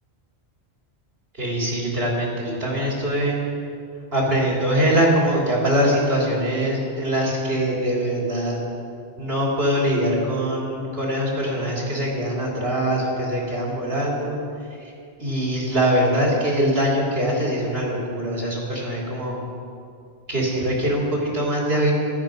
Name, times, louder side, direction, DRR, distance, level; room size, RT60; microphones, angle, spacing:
voice 1, 1.4-3.4 4.1-8.6 9.2-14.4 15.2-19.4 20.3-21.9, equal, 65° right, -4 dB, 3.5 m, -22 dB
15.0 x 12.0 x 5.2 m, 2.5 s
omnidirectional pair, 1.1 m